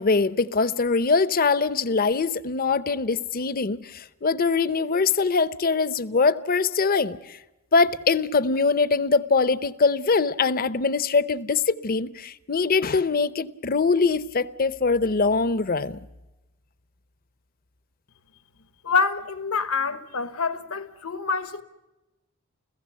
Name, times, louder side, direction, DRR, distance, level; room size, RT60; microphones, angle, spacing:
voice 1, 0.0-7.4 7.7-16.0, left 4 dB, 45° left, 0.7 m, -23 dB
voice 2, 18.8-21.6, left 5 dB, 80° left, 1.2 m, -26 dB
30.0 x 16.0 x 8.2 m
head